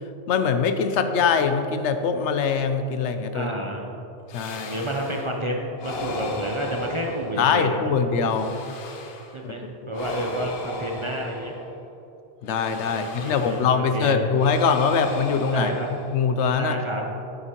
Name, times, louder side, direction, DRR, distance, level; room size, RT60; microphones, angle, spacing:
voice 1, 0.3-3.5 4.3-4.8 7.4-8.5 9.4-9.5 12.4-15.7 16.1-16.8, left 6 dB, 85° left, 8 dB, 0.9 m, -23 dB
voice 2, 3.3-3.9 4.6-7.8 9.3-11.5 13.0-14.3 15.5-15.9 16.5-17.0, right 1 dB, 30° right, 0 dB, 0.6 m, -30 dB
sound 1, 4.3-5.4 5.8-7.8 8.2-9.4 9.9-11.9 12.5-13.9 14.3-16.5, left 2 dB, 60° left, 1.0 m, -36 dB
9.5 x 8.1 x 3.0 m, 2.9 s
omnidirectional pair, 1.2 m